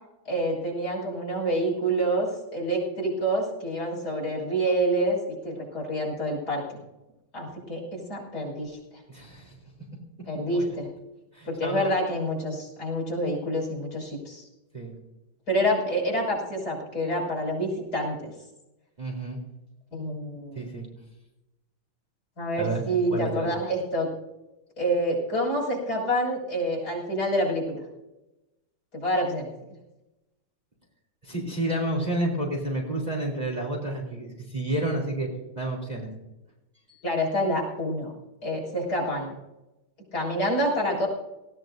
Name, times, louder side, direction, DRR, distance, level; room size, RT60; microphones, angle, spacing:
voice 1, 0.2-5.2 5.4-6.8 7.3-8.8 10.2-10.9 11.5-14.5 15.5-18.3 19.9-20.7 22.4-24.1 24.8-27.8 28.9-29.5 37.0-38.1 38.4-39.3 40.1-41.1, equal, 45° left, -3 dB, 6.7 m, -27 dB
voice 2, 9.1-9.6 10.5-10.8 11.3-11.9 14.7-14.9 19.0-19.4 20.6-20.9 22.6-22.8 23.1-23.5 31.2-35.3 35.6-36.1 36.9-37.0, right 1 dB, 20° right, -1 dB, 3.4 m, -30 dB
19.0 x 18.0 x 2.7 m, 0.97 s
omnidirectional pair, 2.3 m